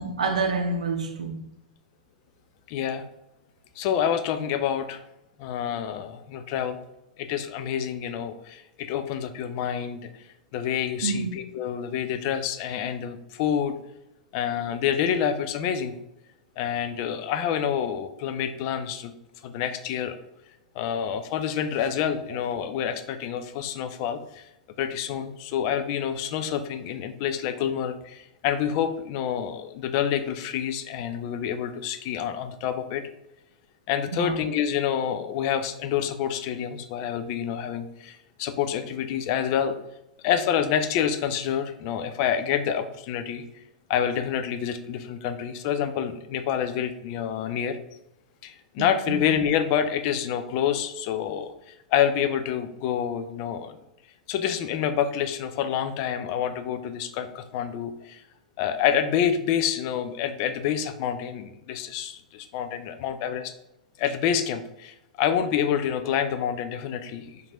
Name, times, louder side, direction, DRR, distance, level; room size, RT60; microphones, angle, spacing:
voice 1, 0.0-1.4 11.0-11.3 34.1-34.3 48.8-49.2, right 4 dB, 70° right, 0.5 m, -28 dB
voice 2, 2.7-3.0 3.8-5.0 5.4-6.8 7.2-10.1 10.5-13.7 14.3-15.9 16.6-19.1 19.4-20.2 20.7-24.5 24.8-33.0 33.9-39.8 40.2-43.4 43.9-47.8 48.4-53.8 54.3-58.2 58.6-63.5 64.0-67.4, left 9 dB, 45° left, 0.3 m, -27 dB
4.3 x 2.6 x 2.9 m
figure-of-eight pair, 95°, 4 cm